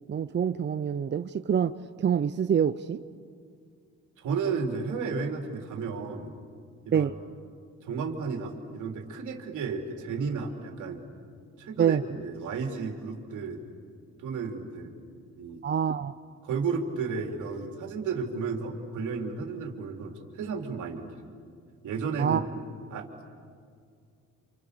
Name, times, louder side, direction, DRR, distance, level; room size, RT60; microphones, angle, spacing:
voice 1, 0.1-3.0 6.9-7.1 11.8-12.0 15.6-16.1 22.2-22.4, right 8 dB, 35° right, 11 dB, 0.6 m, -26 dB
voice 2, 4.2-6.4 6.9-7.1 7.8-11.0 11.6-13.6 14.2-14.9 15.4-15.6 16.4-21.1 21.8-22.4 22.9-23.1, right 5 dB, 80° right, 2 dB, 3.6 m, -33 dB
29.0 x 27.5 x 6.9 m, 2.2 s
cardioid pair, 90°, 30 cm